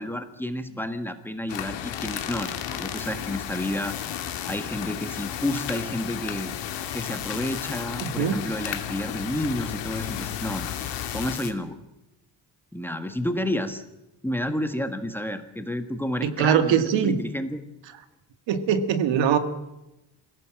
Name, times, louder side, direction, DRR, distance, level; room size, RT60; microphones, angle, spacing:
voice 1, 0.0-3.9 4.5-6.5 6.9-10.8 11.1-11.8 12.7-13.8 14.2-16.7 17.0-17.6, left 1 dB, 5° left, 8 dB, 1.4 m, -30 dB
sound 1, 1.5-11.4, left 11 dB, 70° left, 2.2 m, -34 dB
sound 2, 2.0-11.5, left 9 dB, 50° left, 2.7 m, -39 dB
voice 2, 8.0-8.4 16.2-17.2 18.5-19.4, right 8 dB, 80° right, 9 dB, 2.2 m, -22 dB
26.0 x 17.0 x 7.6 m, 0.97 s
cardioid pair, 160°, 44 cm